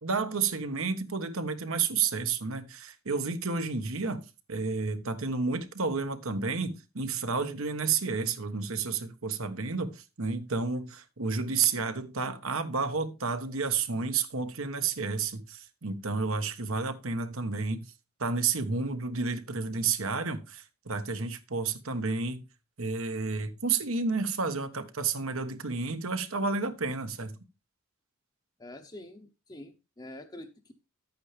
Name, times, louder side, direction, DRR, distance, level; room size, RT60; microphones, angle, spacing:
voice 1, 0.0-4.2 4.5-17.9 18.2-22.4 22.8-27.4, right 4 dB, 70° right, 1.4 m, -31 dB
voice 2, 28.6-30.7, left 1 dB, 20° left, 0.8 m, -46 dB
11.5 x 8.8 x 3.4 m
head